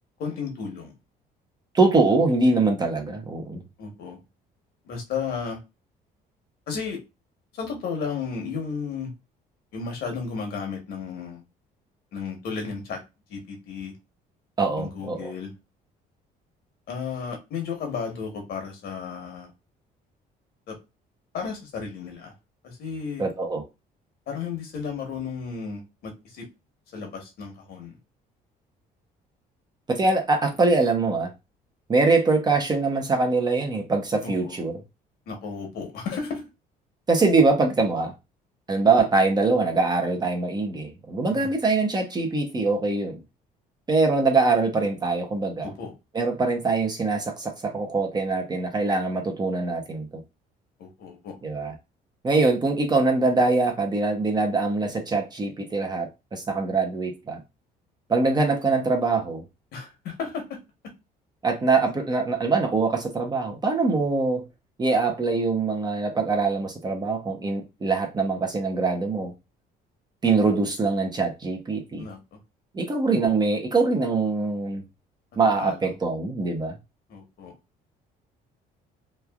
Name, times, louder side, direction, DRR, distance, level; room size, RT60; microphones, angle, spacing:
voice 1, 0.2-0.9 2.4-2.6 3.8-4.2 4.8-5.6 6.7-7.0 7.5-9.1 9.7-11.4 12.1-13.0 13.3-14.0 14.8-15.5 16.9-19.5 20.7-20.8 21.3-22.3 22.6-23.2 24.3-26.5 26.9-27.9 34.2-34.6 35.3-36.5 41.3-41.6 45.6-45.9 50.8-51.3 59.7-60.6 72.0-72.4 75.6-75.9 77.1-77.5, left 5 dB, 70° left, 1.2 m, -33 dB
voice 2, 1.7-3.6 14.6-15.3 23.2-23.6 29.9-31.3 31.9-34.7 37.1-38.1 38.7-43.2 43.9-45.7 46.1-50.1 51.4-51.7 52.2-57.4 58.1-59.4 61.4-64.4 64.8-69.3 70.2-72.1 72.7-74.8 75.4-76.8, right 3 dB, 25° right, 0.7 m, -23 dB
3.1 x 2.4 x 2.3 m
cardioid pair, 110°, 17 cm